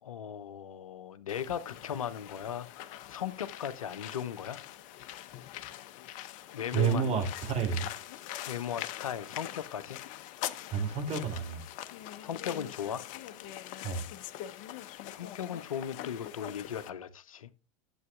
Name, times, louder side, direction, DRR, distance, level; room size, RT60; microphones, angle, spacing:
voice 1, 0.0-4.6 6.5-7.2 8.5-10.0 12.2-13.0 15.1-17.5, left 9 dB, 80° left, 0.7 m, -37 dB
sound 1, 1.3-16.9, left 13 dB, 50° left, 0.8 m, -43 dB
voice 2, 6.7-7.9 10.7-11.6 13.8-14.1, right 6 dB, 40° right, 2.9 m, -30 dB
12.0 x 7.9 x 2.3 m
hypercardioid pair, 90°, 17 cm